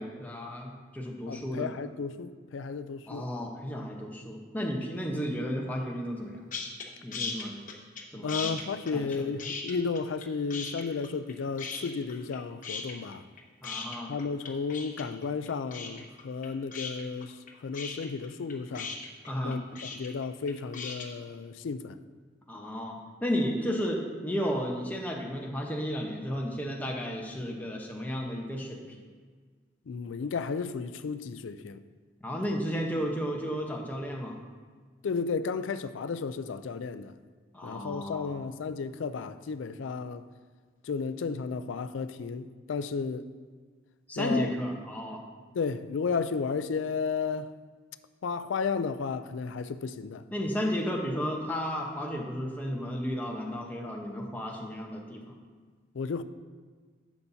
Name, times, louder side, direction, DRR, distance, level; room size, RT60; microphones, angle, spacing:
voice 1, 0.0-1.7 3.1-6.5 7.0-7.5 8.1-8.6 8.9-9.2 13.6-14.2 19.3-19.6 22.5-29.0 32.2-34.4 37.5-38.4 44.1-45.2 50.3-55.2, equal, 10° left, 0.9 m, -33 dB
voice 2, 1.3-3.3 8.2-13.3 14.1-19.0 19.4-19.6 19.9-22.0 29.9-31.8 35.0-37.1 37.6-40.2 40.8-43.3 44.2-44.5 45.5-47.5 48.2-50.2 55.9-56.2, left 5 dB, 70° left, 0.4 m, -33 dB
sound 1, 6.5-6.9 7.1-8.0 8.3-10.3 10.5-11.3 11.6-12.4 12.6-21.1, left 5 dB, 40° left, 1.0 m, -37 dB
11.5 x 7.0 x 2.7 m
head